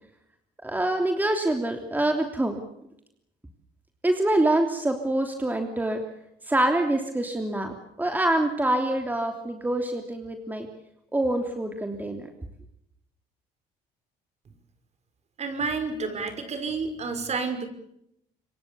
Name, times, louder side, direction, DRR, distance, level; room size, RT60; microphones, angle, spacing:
voice 1, 0.6-2.6 4.0-6.0 6.5-10.7 11.1-12.3, right 1 dB, 10° right, 5 dB, 3.2 m, -25 dB
voice 2, 15.4-17.7, right 4 dB, 40° right, 8 dB, 5.7 m, -30 dB
27.0 x 23.5 x 7.0 m, 0.78 s
cardioid pair, 110°, 17 cm